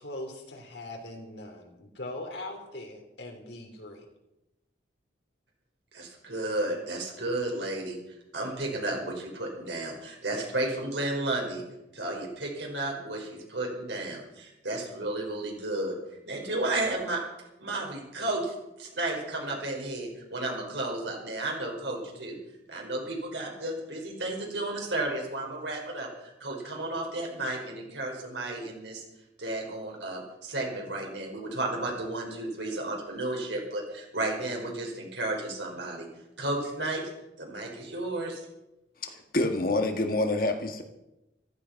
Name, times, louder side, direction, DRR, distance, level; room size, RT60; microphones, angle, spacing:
voice 1, 0.0-4.0, left 1 dB, 70° left, 3 dB, 3.5 m, -41 dB
voice 2, 5.9-8.0 8.3-11.6 11.9-15.9 16.3-17.2 17.6-18.5 18.8-22.4 22.7-29.0 29.4-36.1 36.4-37.0 37.4-38.4, right 2 dB, 75° right, 0 dB, 5.1 m, -33 dB
voice 3, 39.0-40.8, left 2 dB, 50° left, 5 dB, 1.8 m, -27 dB
15.0 x 14.0 x 5.9 m, 0.93 s
head